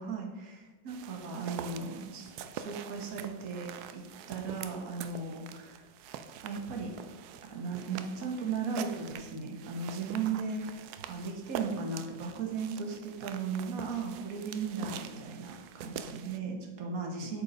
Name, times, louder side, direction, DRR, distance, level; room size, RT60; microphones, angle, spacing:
voice 1, 0.0-4.0 4.3-5.9 6.4-6.9 7.5-10.6 11.1-17.4, right 5 dB, 50° right, 1 dB, 1.6 m, -36 dB
sound 1, 0.9-16.4, right 8 dB, 75° right, 0.9 m, -45 dB
7.7 x 4.6 x 5.4 m, 1.2 s
omnidirectional pair, 2.1 m